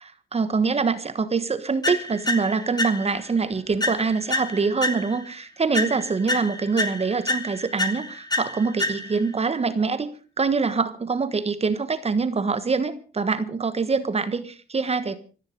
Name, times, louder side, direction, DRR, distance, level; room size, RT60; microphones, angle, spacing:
voice 1, 0.0-15.2, right 4 dB, 30° right, 12 dB, 1.4 m, -25 dB
sound 1, 1.8-3.3 3.8-5.3 5.7-9.3, left 2 dB, 20° left, 2.5 m, -29 dB
15.0 x 14.5 x 5.3 m, 0.38 s
cardioid pair, 90°, 20 cm